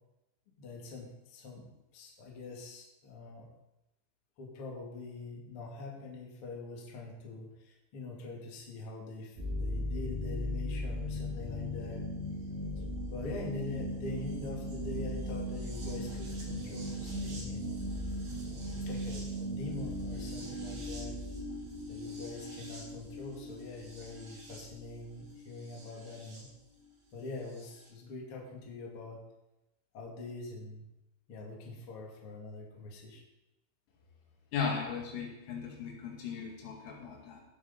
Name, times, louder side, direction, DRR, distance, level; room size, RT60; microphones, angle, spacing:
voice 1, 0.6-1.7 1.9-3.5 4.4-12.0 12.8-12.9 13.1-17.8 18.7-21.2 21.9-26.5 27.1-29.2 29.9-30.9 31.3-33.2, left 3 dB, 35° left, -2 dB, 2.5 m, -44 dB
sound 1, 9.4-26.4 27.6-27.7, equal, 45° right, 6.0 m, -38 dB
voice 2, 34.5-37.4, left 5 dB, 85° left, -1 dB, 4.9 m, -37 dB
17.5 x 8.9 x 4.1 m, 0.92 s
omnidirectional pair, 5.6 m